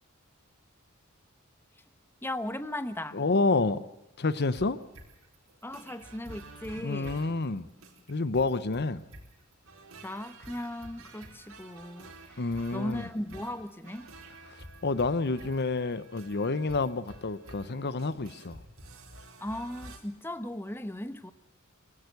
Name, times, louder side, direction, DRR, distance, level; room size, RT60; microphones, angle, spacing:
voice 1, 2.2-3.2 5.6-7.2 10.0-12.4 12.7-14.1 19.4-21.3, left 1 dB, 10° left, 0.9 m, -37 dB
voice 2, 3.1-3.9 4.2-4.8 6.8-7.7 8.1-9.0 12.4-13.1 14.5-18.6, left 3 dB, 50° left, 0.8 m, -29 dB
sound 1, 4.3-20.0, right 2 dB, 85° right, 4.3 m, -50 dB
23.0 x 16.5 x 8.0 m
head